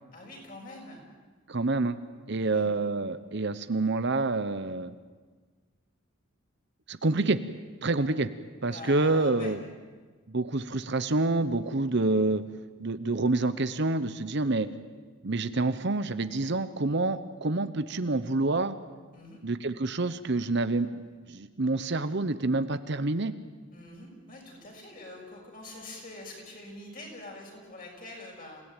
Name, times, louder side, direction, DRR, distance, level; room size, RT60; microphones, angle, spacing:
voice 1, 0.1-1.0 2.4-2.7 8.6-9.5 19.1-19.4 23.7-28.6, left 2 dB, 40° left, 0 dB, 6.4 m, -45 dB
voice 2, 1.5-2.0 2.3-4.9 6.9-7.4 7.8-8.3 8.6-9.6 10.3-12.4 12.8-14.7 15.2-18.8 19.4-23.3, right 2 dB, 55° right, 12 dB, 0.9 m, -27 dB
28.0 x 17.0 x 9.1 m, 1.4 s
head